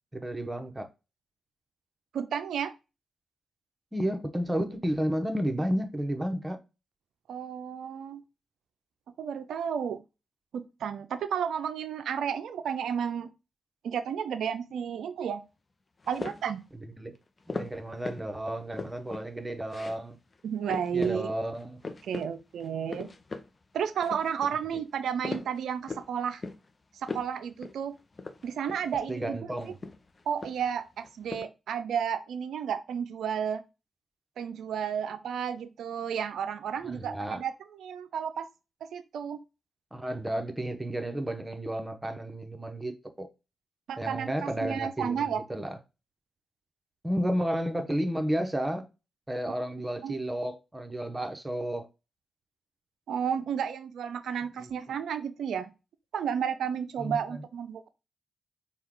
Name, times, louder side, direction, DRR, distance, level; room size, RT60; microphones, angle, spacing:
voice 1, 0.1-0.9 3.9-6.6 16.8-17.2 17.5-20.2 20.9-21.8 29.1-29.8 36.8-37.4 39.9-43.3 44.0-45.8 47.0-48.9 49.3-51.9 54.6-54.7 57.0-57.4, right 1 dB, 20° right, 0.9 m, -32 dB
voice 2, 2.1-2.7 7.3-8.2 9.2-10.0 10.5-13.3 13.8-15.4 16.1-16.6 20.4-21.3 22.0-23.1 23.7-26.4 27.0-27.9 28.4-29.4 30.3-33.6 34.4-38.5 38.9-39.4 43.9-45.4 50.0-50.1 53.1-55.7 56.1-57.9, right 8 dB, 75° right, 0.3 m, -32 dB
sound 1, 16.0-16.6 17.5-18.3 18.6-19.3 19.7-20.0 20.3-20.4 20.7-21.2 21.5-22.3 22.6-23.5 23.8-24.5 24.9-26.1 26.4-26.7 27.0-27.3 27.6-27.8 28.1-28.9 29.6-30.8 31.0-31.4, left 3 dB, 40° left, 0.6 m, -38 dB
4.4 x 2.3 x 3.7 m
supercardioid pair, 40°, 0 cm